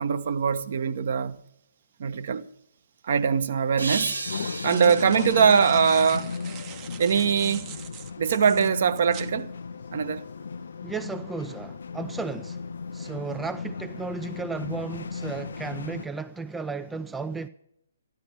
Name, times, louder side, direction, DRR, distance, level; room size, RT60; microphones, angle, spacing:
voice 1, 0.0-1.4 2.0-2.4 3.0-4.2 4.6-6.3 7.0-7.7 8.2-9.5 9.9-10.2, right 6 dB, 50° right, 1.0 m, -22 dB
sound 1, 3.8-6.9, right 3 dB, 75° right, 1.7 m, -35 dB
sound 2, 4.2-16.1, left 5 dB, 60° left, 0.6 m, -36 dB
sound 3, 4.3-9.3, right 9 dB, 25° right, 0.9 m, -43 dB
voice 2, 10.8-12.6 12.9-17.5, right 4 dB, 5° right, 0.5 m, -34 dB
14.0 x 12.0 x 6.8 m
figure-of-eight pair, 130°, 0 cm